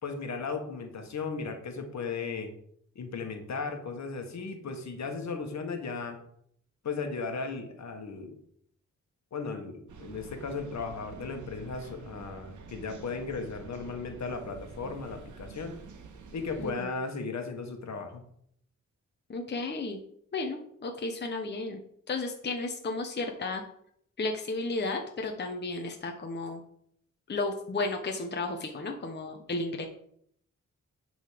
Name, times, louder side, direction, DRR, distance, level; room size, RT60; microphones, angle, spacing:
voice 1, 0.0-2.5 2.9-6.2 6.8-8.3 9.3-15.7 16.3-18.2, left 4 dB, 65° left, 5 dB, 1.5 m, -36 dB
sound 1, 9.9-16.7, right 4 dB, 75° right, 1.1 m, -48 dB
voice 2, 16.6-16.9 19.3-20.0 20.3-21.8 22.1-23.6 24.2-26.6 27.3-29.9, left 3 dB, 35° left, 3 dB, 0.9 m, -33 dB
10.0 x 4.0 x 5.0 m, 0.69 s
wide cardioid pair, 110°, 30 cm